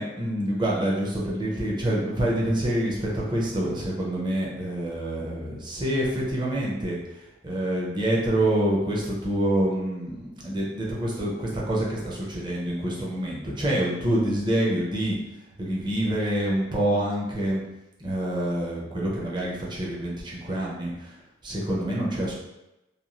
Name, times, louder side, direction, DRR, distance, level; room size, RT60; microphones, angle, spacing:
voice 1, 0.0-7.0 7.4-15.2 15.6-17.6 18.0-21.1 21.4-22.3, right 1 dB, 25° right, -5 dB, 0.6 m, -26 dB
2.6 x 2.3 x 3.0 m, 0.96 s
head